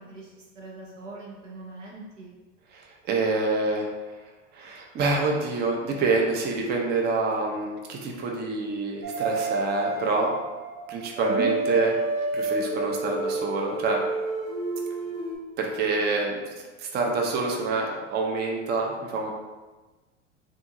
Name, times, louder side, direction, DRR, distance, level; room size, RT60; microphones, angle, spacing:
voice 1, 0.0-2.3 11.2-11.5, right 4 dB, 90° right, -2 dB, 0.8 m, -39 dB
voice 2, 2.7-3.9 4.5-10.3 10.9-11.9 12.3-14.0 15.6-16.5 16.8-19.3, right 3 dB, 25° right, 0 dB, 0.5 m, -27 dB
sound 1, 9.0-15.4, right 2 dB, 45° right, 1.1 m, -29 dB
2.6 x 2.4 x 2.7 m, 1.2 s
hypercardioid pair, 90°, 36 cm